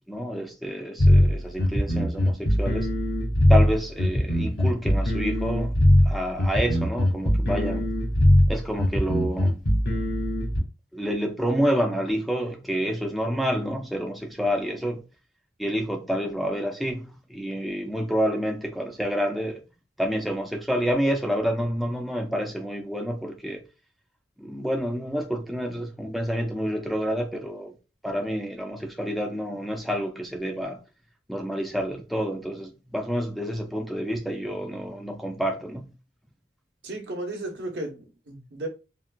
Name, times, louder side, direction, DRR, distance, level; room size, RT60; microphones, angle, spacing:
voice 1, 0.1-2.9 3.5-7.9 8.5-9.6 10.9-15.0 15.6-19.6 20.0-23.6 24.4-27.7 28.0-30.8 31.3-35.9, equal, ahead, 0.3 m, -28 dB
sound 1, 1.0-10.6, left 1 dB, 75° left, 1.3 m, -21 dB
voice 2, 36.8-38.7, right 2 dB, 70° right, 0.9 m, -34 dB
3.7 x 2.3 x 2.2 m
head